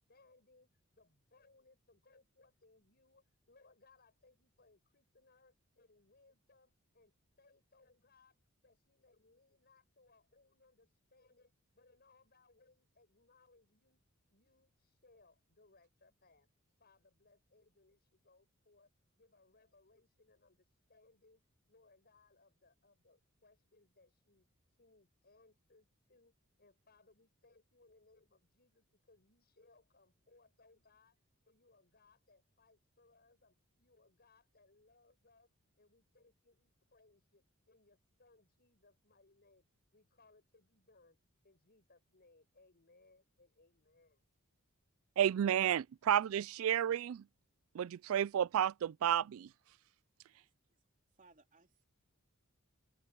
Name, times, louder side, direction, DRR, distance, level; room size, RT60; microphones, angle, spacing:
voice 1, 0.1-8.4 8.6-14.0 14.3-16.5 16.8-18.9 19.2-21.4 21.7-24.5 24.8-26.3 26.6-31.2 31.4-35.5 35.8-39.6 39.9-41.2 41.4-44.2, left 3 dB, 50° left, 7.0 m, -69 dB
voice 2, 45.2-47.2 47.7-49.5, right 10 dB, 70° right, 0.3 m, -31 dB
voice 3, 50.3-50.8 51.1-51.8, right 3 dB, 40° right, 3.2 m, -67 dB
open air
head